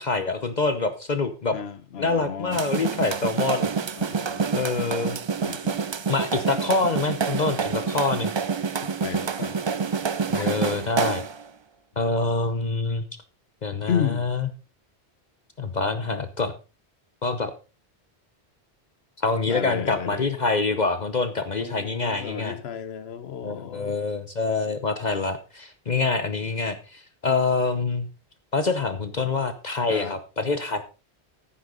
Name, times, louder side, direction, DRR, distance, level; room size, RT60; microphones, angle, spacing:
voice 1, 0.0-1.6 2.0-3.7 4.5-5.2 6.1-8.3 10.3-11.2 12.0-13.0 13.6-14.5 15.6-16.5 17.2-17.5 19.2-22.6 23.4-28.1 28.5-30.8, left 3 dB, 45° left, 0.9 m, -26 dB
voice 2, 1.5-2.6 4.0-4.5 5.4-5.8 8.8-9.6 10.3-10.6 13.9-14.3 19.5-20.2 21.6-24.0 29.9-30.2, left 8 dB, 70° left, 1.1 m, -32 dB
sound 1, 2.5-11.4, right 5 dB, 45° right, 0.3 m, -27 dB
10.5 x 9.7 x 3.9 m
omnidirectional pair, 1.1 m